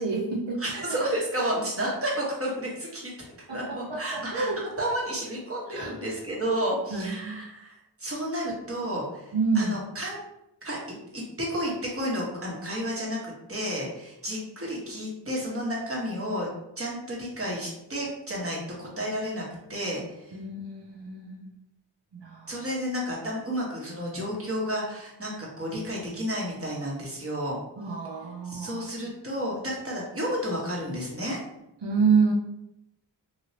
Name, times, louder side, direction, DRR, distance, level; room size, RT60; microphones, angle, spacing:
voice 1, 0.0-1.0 3.5-4.6 5.7-6.0 6.9-7.4 9.3-9.8 20.3-21.5 22.1-22.6 27.8-28.9 31.8-32.3, right 5 dB, 75° right, -1 dB, 0.7 m, -28 dB
voice 2, 0.6-3.1 3.5-4.5 4.8-7.7 8.0-10.2 10.6-10.8 11.1-16.5 16.8-19.4 19.7-20.4 22.5-27.6 28.4-31.4, equal, 30° right, -3 dB, 1.2 m, -31 dB
3.1 x 2.7 x 2.8 m, 0.84 s
wide cardioid pair, 50°, 44 cm